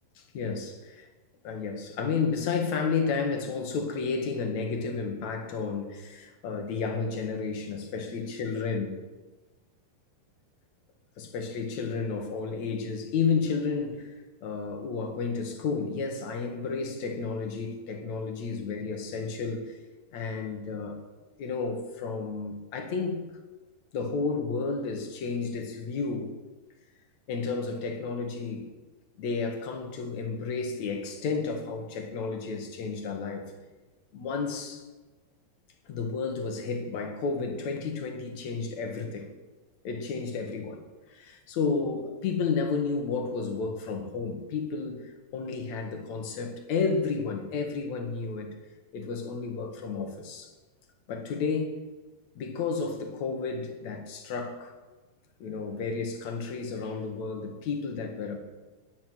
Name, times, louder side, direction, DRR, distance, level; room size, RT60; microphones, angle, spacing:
voice 1, 0.3-1.1 1.4-8.9 11.2-14.1 14.4-19.8 20.1-21.0 21.4-23.2 23.9-26.4 27.3-28.7 29.2-33.5 34.1-34.9 35.9-39.3 39.8-40.8 41.1-48.5 48.9-50.5 51.1-51.8 52.4-54.7 55.4-58.4, left 5 dB, 50° left, 2.7 m, -32 dB
20.5 x 10.0 x 6.3 m
omnidirectional pair, 4.9 m